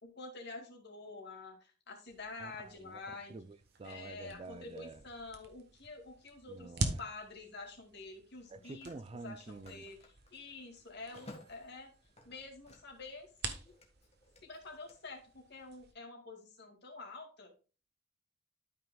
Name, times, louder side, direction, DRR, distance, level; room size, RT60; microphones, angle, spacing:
voice 1, 0.0-3.4 3.8-6.7 7.0-8.9 9.2-11.9 12.2-13.7 14.4-17.5, left 3 dB, 55° left, 2.2 m, -48 dB
sound 1, 2.1-15.9, right 3 dB, 55° right, 1.1 m, -46 dB
voice 2, 2.4-3.0 3.3-5.0 6.5-7.0 8.5-9.8, right 3 dB, 30° right, 0.4 m, -48 dB
Telephone, 6.1-6.3 8.2-13.1 13.4-14.9, left 1 dB, 30° left, 1.6 m, -58 dB
12.5 x 5.6 x 2.3 m
head